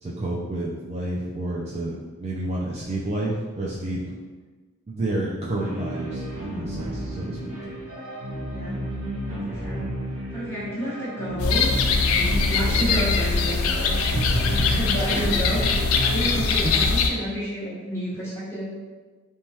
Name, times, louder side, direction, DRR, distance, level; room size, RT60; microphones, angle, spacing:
voice 1, 0.0-4.1 4.9-7.6 14.1-14.8 15.1-15.2 16.0-16.7, right 1 dB, 30° right, -5 dB, 0.3 m, -30 dB
sound 1, 5.6-16.8, equal, 85° right, 0.7 m, -32 dB
voice 2, 8.5-8.8 9.2-9.8 10.3-15.6 16.0-18.7, equal, 10° left, -11 dB, 1.1 m, -31 dB
sound 2, 11.4-17.1, left 4 dB, 75° left, 0.3 m, -22 dB
3.1 x 2.2 x 2.7 m, 1.3 s
head